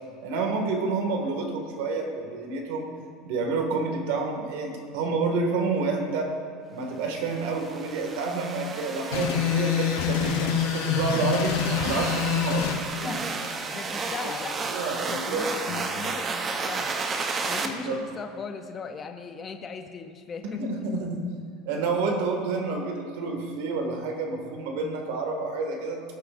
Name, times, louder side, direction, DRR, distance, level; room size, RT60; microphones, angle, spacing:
voice 1, 0.2-2.9 3.2-6.3 6.7-11.5 11.8-12.7 13.0-13.1 14.7-15.5 17.6-18.0 20.4-21.2 21.7-26.0, right 3 dB, 80° right, 2 dB, 1.9 m, -29 dB
sound 1, 7.2-17.7, right 4 dB, 25° right, 0.7 m, -33 dB
sound 2, 9.1-12.8, left 8 dB, 90° left, 1.1 m, -26 dB
voice 2, 12.6-13.3 13.6-14.7 15.1-15.6 16.0-17.0 17.4-20.6, left 5 dB, 25° left, 6 dB, 0.6 m, -38 dB
Acoustic guitar / Strum, 15.7-20.4, left 5 dB, 60° left, 1.2 m, -46 dB
17.0 x 8.8 x 2.6 m, 2.4 s
supercardioid pair, 145°, 0 cm